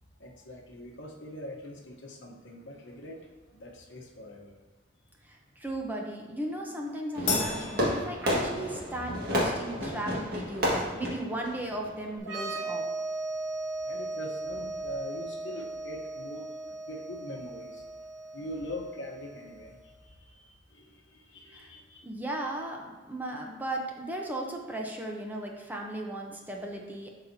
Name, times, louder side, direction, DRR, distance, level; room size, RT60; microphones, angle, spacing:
voice 1, 0.2-3.2 3.5-4.6 13.8-16.4 16.9-17.8 18.3-22.0, left 1 dB, 65° left, 0 dB, 1.0 m, -43 dB
voice 2, 5.2-12.8 21.5-21.7 22.0-27.1, right 1 dB, 10° right, 0 dB, 0.7 m, -36 dB
Fireworks, 7.1-12.2, equal, 50° right, 1.7 m, -31 dB
Crash cymbal, 7.3-8.9, left 4 dB, 40° left, 1.1 m, -34 dB
sound 1, 12.2-19.7, right 2 dB, 85° right, 1.0 m, -37 dB
11.5 x 4.1 x 2.7 m, 1.2 s
head